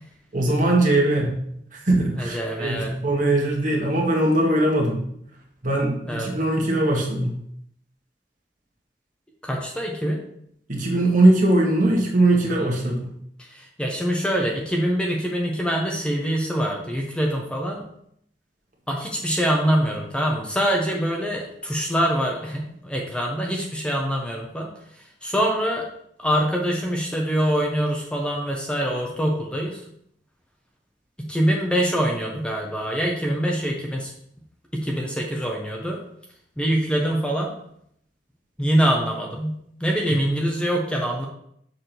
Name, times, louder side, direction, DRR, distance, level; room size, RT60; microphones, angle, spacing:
voice 1, 0.3-1.4 1.7-5.1 5.6-7.4 10.7-13.1 40.1-40.2, right 1 dB, 45° right, -1 dB, 1.7 m, -21 dB
voice 2, 2.2-2.9 6.1-6.3 9.4-10.2 12.5-12.7 13.4-17.9 18.9-24.7 24.9-25.8 26.2-29.8 31.2-34.1 34.7-36.0 36.6-37.5 38.6-41.2, equal, 5° left, -1 dB, 0.9 m, -24 dB
6.8 x 3.6 x 6.0 m, 0.70 s
head